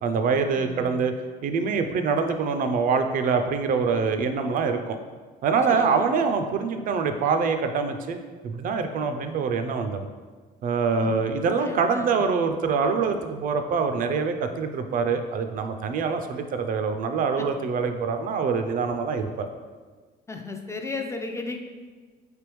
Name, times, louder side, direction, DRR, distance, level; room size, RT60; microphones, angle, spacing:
voice 1, 0.0-1.1 1.4-5.0 5.4-8.2 8.4-10.1 10.6-19.5, right 5 dB, 55° right, 7 dB, 0.4 m, -25 dB
voice 2, 0.5-1.1 5.7-6.1 11.0-11.1 11.6-12.2 17.4-17.5 20.3-21.6, left 3 dB, 15° left, 4 dB, 0.3 m, -35 dB
4.5 x 3.4 x 3.0 m, 1.4 s
cardioid pair, 110°, 17 cm